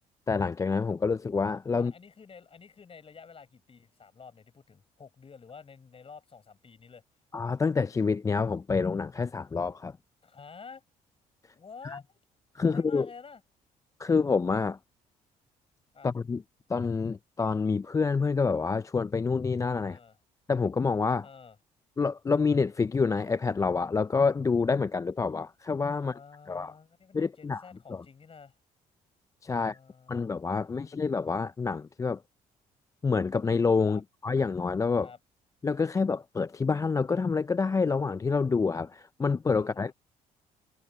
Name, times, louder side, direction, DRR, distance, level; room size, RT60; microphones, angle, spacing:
voice 1, 0.3-1.9 7.3-10.0 11.8-12.0 12.5-13.1 14.0-14.8 16.0-16.4 16.7-20.0 20.5-21.3 22.0-26.2 26.5-26.7 27.1-27.6 27.9-28.0 29.4-29.8 30.1-32.2 33.0-35.1 35.6-39.9, left 4 dB, 20° left, 0.4 m, -27 dB
voice 2, 1.7-7.0 10.2-10.8 11.5-12.2 12.6-13.4 15.9-16.1 19.8-20.2 21.2-21.6 26.0-28.6 29.6-30.2 30.8-30.9 33.9-34.0 35.0-35.2 39.6-39.9, left 5 dB, 40° left, 6.3 m, -50 dB
supercardioid pair, 75°, 15 cm